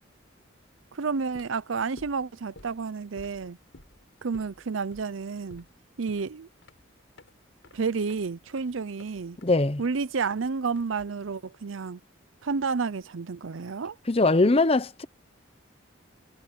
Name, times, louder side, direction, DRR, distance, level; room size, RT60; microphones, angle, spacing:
voice 1, 0.9-3.6 4.2-5.7 6.0-6.5 7.7-9.4 9.8-12.0 12.4-14.0, right 5 dB, 80° right, 0.6 m, -30 dB
sound 1, 1.2-11.4, left 1 dB, 75° left, 7.8 m, -54 dB
voice 2, 9.4-9.8 14.1-15.1, left 2 dB, 30° left, 0.8 m, -21 dB
head